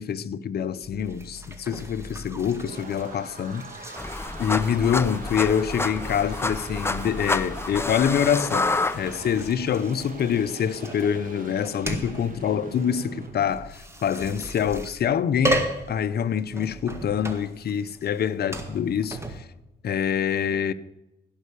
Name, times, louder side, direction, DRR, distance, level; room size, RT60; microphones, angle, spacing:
voice 1, 0.0-3.7 4.4-19.5 19.8-20.7, left 8 dB, 50° left, 0.8 m, -26 dB
sound 1, 0.8-19.4, right 1 dB, 15° right, 1.9 m, -36 dB
sound 2, 2.1-13.3, right 3 dB, 40° right, 2.5 m, -43 dB
sound 3, 4.0-9.5, left 3 dB, 10° left, 0.6 m, -28 dB
16.5 x 5.6 x 6.7 m
cardioid pair, 90°, 20 cm